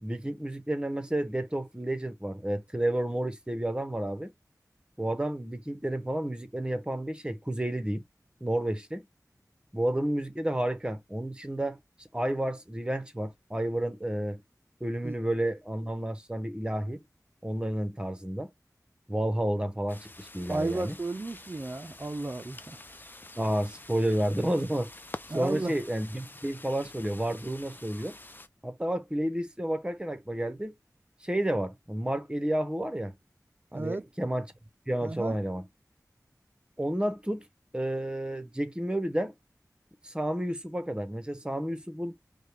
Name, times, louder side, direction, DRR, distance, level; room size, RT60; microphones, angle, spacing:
voice 1, 0.0-4.3 5.0-8.0 8.4-9.0 9.7-11.8 12.1-14.4 14.8-17.0 17.4-18.5 19.1-20.9 23.4-24.9 25.3-28.2 28.6-30.7 31.2-33.1 33.7-34.5 34.9-35.6 36.8-37.5 37.7-39.3 40.0-42.1, right 1 dB, 15° right, 1.0 m, -31 dB
sound 1, 19.9-28.5, left 2 dB, 30° left, 0.5 m, -47 dB
voice 2, 20.5-22.8 25.3-25.7 33.7-34.1 35.0-35.4, right 2 dB, 35° right, 0.4 m, -33 dB
5.3 x 2.2 x 3.3 m
wide cardioid pair, 60°, 6 cm